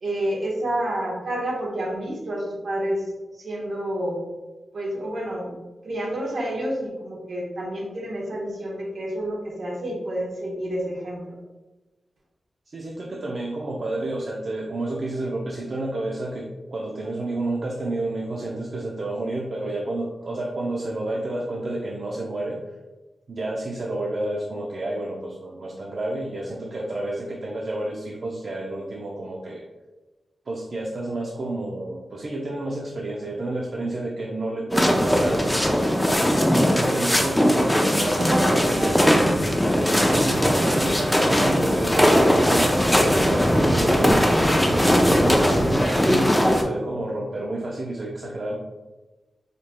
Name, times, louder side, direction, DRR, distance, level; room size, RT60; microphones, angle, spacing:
voice 1, 0.0-3.1 3.4-4.2 4.7-5.5 5.8-11.4 38.2-38.9, right 1 dB, 70° right, -3 dB, 1.1 m, -29 dB
voice 2, 12.7-22.6 23.3-29.6 30.5-36.1 36.8-39.2 40.0-48.5, right 2 dB, 55° right, -3 dB, 0.5 m, -30 dB
sound 1, 34.7-46.6, equal, 10° left, 0.5 m, -20 dB
5.0 x 2.9 x 2.2 m, 1.1 s
wide cardioid pair, 90°, 0 cm